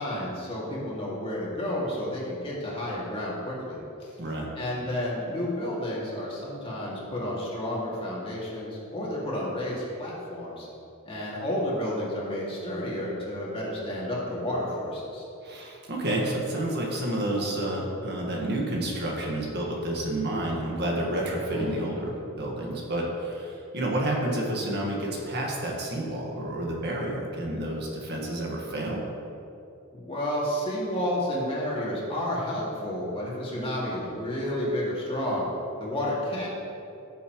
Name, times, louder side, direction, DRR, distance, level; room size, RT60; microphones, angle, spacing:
voice 1, 0.0-4.1 4.6-10.7 11.1-15.2 21.5-22.0 29.9-35.5 35.8-36.5, left 1 dB, 25° left, -6 dB, 2.3 m, -31 dB
voice 2, 15.4-29.0, right 1 dB, 50° right, -2 dB, 1.6 m, -30 dB
16.5 x 7.1 x 3.1 m, 2.8 s
head